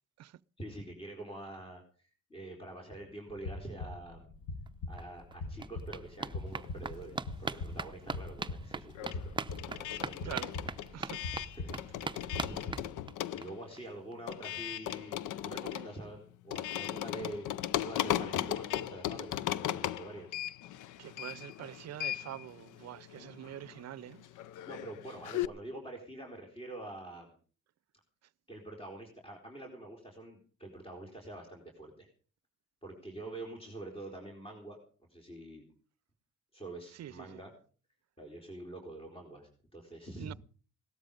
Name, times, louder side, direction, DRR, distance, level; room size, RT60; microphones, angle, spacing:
voice 1, 0.6-4.2 4.9-9.4 9.7-10.6 10.9-11.0 11.5-12.8 13.3-20.4 24.7-27.3 28.5-32.1 32.8-34.8 35.1-35.6 36.5-37.5 38.2-40.3, right 2 dB, 20° left, 4.4 m, -46 dB
sound 1, 3.3-13.1, left 3 dB, 65° left, 7.0 m, -43 dB
sound 2, 4.7-4.8 5.0-13.5 13.8-13.9 14.1-14.2 14.5-14.6, right 4 dB, 15° right, 0.7 m, -42 dB
sound 3, 6.6-7.9 8.1-25.5, left 12 dB, 85° left, 0.7 m, -38 dB
voice 2, 10.2-10.5 10.9-11.2 21.0-24.3 36.9-37.4 40.2-40.3, right 12 dB, 60° right, 0.6 m, -45 dB
18.0 x 13.0 x 5.2 m
cardioid pair, 90°, 30 cm